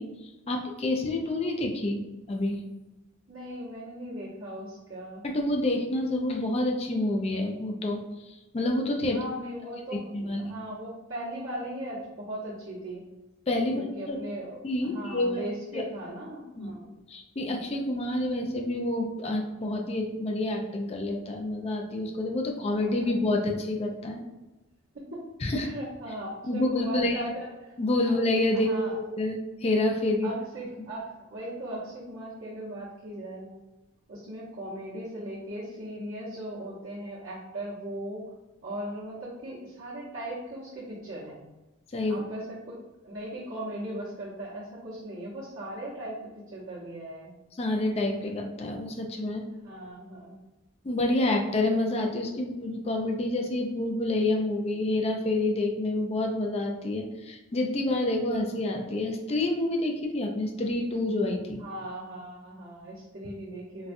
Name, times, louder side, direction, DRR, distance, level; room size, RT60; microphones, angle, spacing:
voice 1, 0.0-2.0 2.3-2.6 5.2-9.2 10.1-10.5 13.5-14.2 14.6-15.5 15.7-15.8 16.6-16.7 17.1-24.2 25.4-25.7 26.5-27.2 27.8-30.3 30.8-30.9 41.9-42.2 47.5-49.4 50.8-61.6, left 2 dB, 30° left, 2 dB, 0.4 m, -28 dB
voice 2, 3.3-5.3 9.1-13.0 13.7-16.9 22.8-23.1 24.9-25.3 25.5-27.7 28.5-28.9 30.2-33.6 34.1-38.3 38.6-41.5 42.1-42.4 43.0-47.3 49.5-50.4 61.6-63.9, right 1 dB, 65° right, -12 dB, 0.9 m, -38 dB
4.0 x 2.2 x 2.5 m, 1.0 s
head